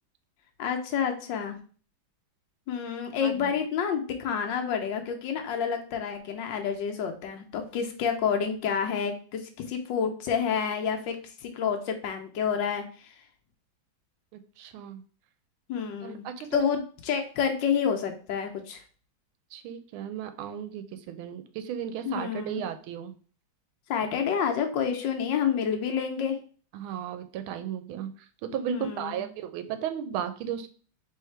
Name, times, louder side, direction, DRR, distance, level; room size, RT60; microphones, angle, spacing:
voice 1, 0.6-1.6 2.7-13.1 15.7-16.2 16.5-18.8 22.0-22.7 23.9-26.4 28.7-29.3, left 7 dB, 70° left, 5 dB, 1.3 m, -29 dB
voice 2, 3.2-3.6 14.3-15.0 16.0-16.7 19.5-23.1 26.7-30.7, right 9 dB, 90° right, 9 dB, 1.4 m, -35 dB
3.5 x 3.2 x 4.4 m, 0.40 s
omnidirectional pair, 2.2 m